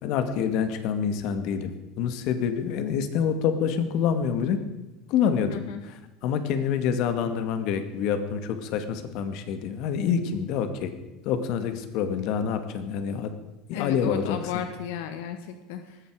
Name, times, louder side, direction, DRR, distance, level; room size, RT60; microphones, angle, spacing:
voice 1, 0.0-4.6 5.1-5.9 6.2-10.9 11.2-13.3 13.7-14.4, left 7 dB, 60° left, 9 dB, 2.1 m, -27 dB
voice 2, 5.5-5.8 13.7-16.0, left 9 dB, 85° left, 7 dB, 1.7 m, -34 dB
19.0 x 15.0 x 5.0 m, 1.1 s
cardioid pair, 140°, 0 cm